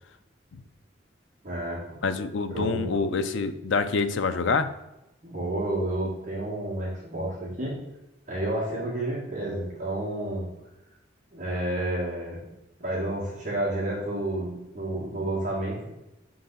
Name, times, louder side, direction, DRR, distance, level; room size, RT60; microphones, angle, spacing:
voice 1, 1.4-2.0 2.5-2.8 5.2-7.8 8.3-10.5 11.3-12.5 12.8-15.8, right 1 dB, 40° right, -7 dB, 1.9 m, -30 dB
voice 2, 2.0-4.7, left 4 dB, 80° left, 10 dB, 0.5 m, -26 dB
6.7 x 3.9 x 4.0 m, 0.94 s
head